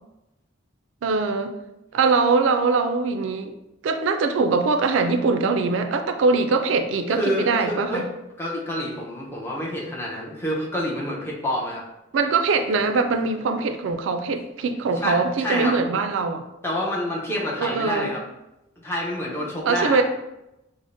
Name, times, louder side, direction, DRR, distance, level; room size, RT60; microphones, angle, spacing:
voice 1, 1.0-1.5 1.9-3.5 3.8-8.1 12.1-16.4 17.6-18.1 19.7-20.0, right 4 dB, 85° right, 7 dB, 0.4 m, -22 dB
voice 2, 7.1-8.0 8.4-11.8 14.9-15.7 16.6-18.2 18.8-20.0, equal, 15° left, -4 dB, 0.7 m, -28 dB
4.8 x 2.0 x 2.6 m, 0.91 s
head